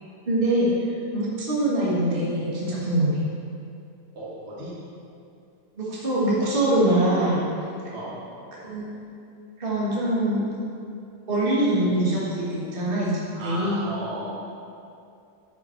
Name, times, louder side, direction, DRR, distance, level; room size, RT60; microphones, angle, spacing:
voice 1, 0.2-0.7 1.1-3.2 5.8-7.4 8.6-8.9 9.6-10.4 11.3-13.9, right 1 dB, 85° right, -7 dB, 0.5 m, -23 dB
voice 2, 4.1-4.8 7.9-8.2 13.3-14.3, right 1 dB, 40° right, -7 dB, 0.8 m, -35 dB
10.0 x 5.2 x 4.5 m, 2.6 s
omnidirectional pair, 3.8 m